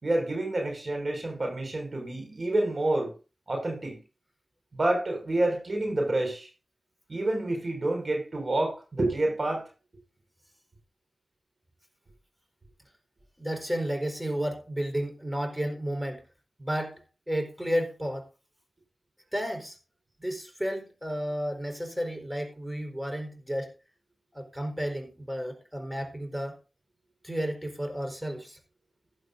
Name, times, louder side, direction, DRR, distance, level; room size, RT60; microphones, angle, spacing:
voice 1, 0.0-3.1 3.5-4.0 4.7-6.5 7.1-9.7, right 2 dB, 55° right, 5.4 m, -28 dB
voice 2, 13.4-16.2 16.6-17.0 17.3-18.3 19.3-19.8 20.2-23.7 24.3-26.6 27.2-28.6, equal, 10° right, 4.4 m, -32 dB
16.0 x 11.0 x 2.6 m
cardioid pair, 45°, 0 cm